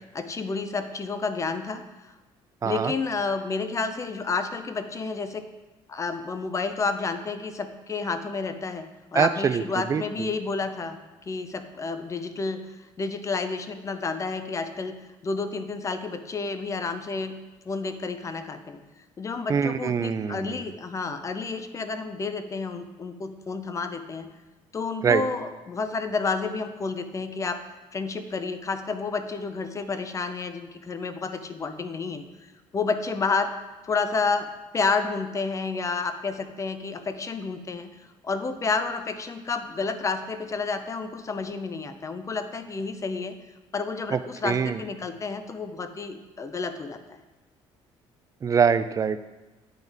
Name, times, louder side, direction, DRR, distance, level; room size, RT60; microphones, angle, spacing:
voice 1, 0.1-1.8 2.6-5.5 5.9-11.0 11.3-12.6 13.0-15.0 15.2-17.4 17.7-18.8 19.2-24.3 24.7-27.6 27.9-32.2 32.7-33.5 33.8-37.9 38.2-43.3 43.7-47.2, left 4 dB, 30° left, 9 dB, 0.5 m, -30 dB
voice 2, 2.6-2.9 9.1-10.3 19.5-20.6 25.0-25.2 44.1-44.8 48.4-49.2, right 6 dB, 30° right, 12 dB, 0.3 m, -24 dB
9.0 x 3.9 x 3.5 m, 1.1 s
cardioid pair, 90°, 11 cm